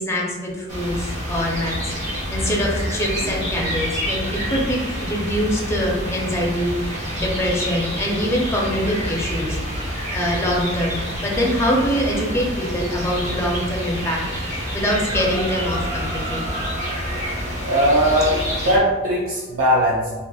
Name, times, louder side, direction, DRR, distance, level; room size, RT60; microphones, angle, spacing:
voice 1, 0.0-9.8 10.1-16.5, equal, 15° left, -2 dB, 0.4 m, -24 dB
sound 1, 0.7-18.8, equal, 35° right, 0.7 m, -27 dB
voice 2, 17.6-20.2, equal, 85° right, -7 dB, 0.5 m, -20 dB
2.8 x 2.4 x 2.2 m, 1.3 s
head